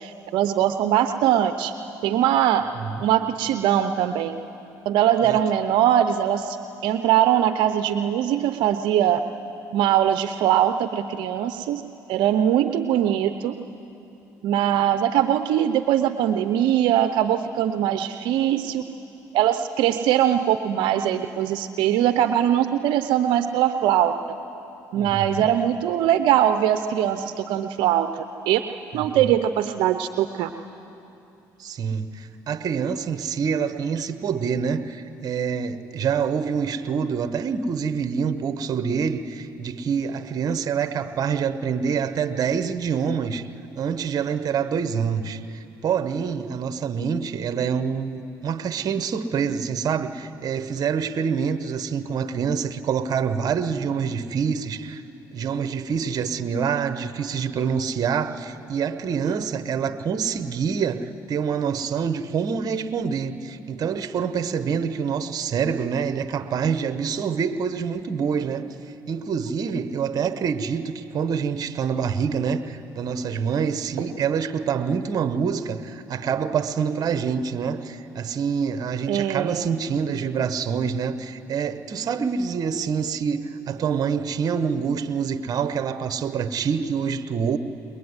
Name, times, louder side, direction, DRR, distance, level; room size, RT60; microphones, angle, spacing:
voice 1, 0.0-1.7 2.0-2.6 3.0-4.3 4.9-6.6 6.8-9.2 9.7-11.8 12.1-13.5 14.4-18.8 19.3-24.1 24.9-28.6 28.9-30.5 79.1-79.7, right 11 dB, 75° right, 9 dB, 0.7 m, -21 dB
voice 2, 24.9-25.5 28.9-29.2 31.6-43.5 43.7-55.0 55.3-68.7 69.1-87.6, right 6 dB, 50° right, 10 dB, 1.3 m, -26 dB
21.5 x 21.5 x 9.7 m, 2.9 s
supercardioid pair, 75°, 8 cm